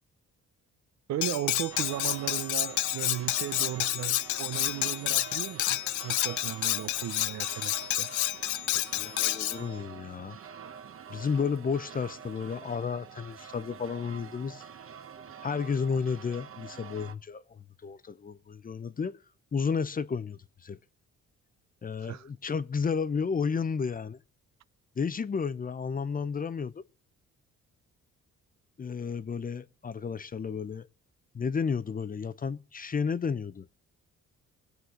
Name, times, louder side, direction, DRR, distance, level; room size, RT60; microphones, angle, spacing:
voice 1, 1.1-8.1 22.0-22.3, right 12 dB, 65° right, 0.6 m, -36 dB
Cutlery silverware, 1.2-9.6, left 16 dB, 75° left, 0.5 m, -29 dB
sound 1, 1.7-17.1, right 7 dB, 45° right, 1.2 m, -46 dB
voice 2, 8.7-10.4 11.1-14.6 15.4-19.2 19.5-20.8 21.8-24.2 25.0-26.8 28.8-30.9 31.3-33.7, left 5 dB, 30° left, 0.7 m, -32 dB
22.0 x 8.1 x 3.8 m
cardioid pair, 90°, 30 cm